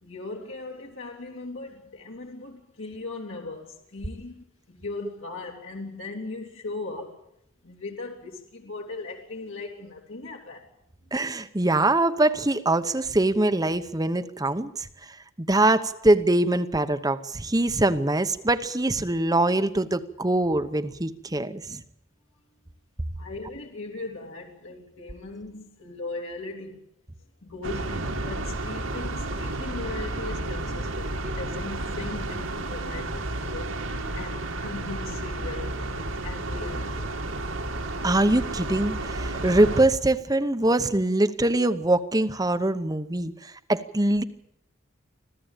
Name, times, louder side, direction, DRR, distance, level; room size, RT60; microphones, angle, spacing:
voice 1, 0.0-7.3 7.6-10.7 21.7-21.8 23.1-26.9 27.4-33.7 34.1-37.1, left 3 dB, 70° left, 3.1 m, -38 dB
voice 2, 11.1-21.8 38.0-44.2, right 2 dB, 20° right, 0.9 m, -23 dB
sound 1, 27.6-39.8, right 2 dB, 85° right, 2.9 m, -31 dB
25.5 x 15.0 x 9.0 m
head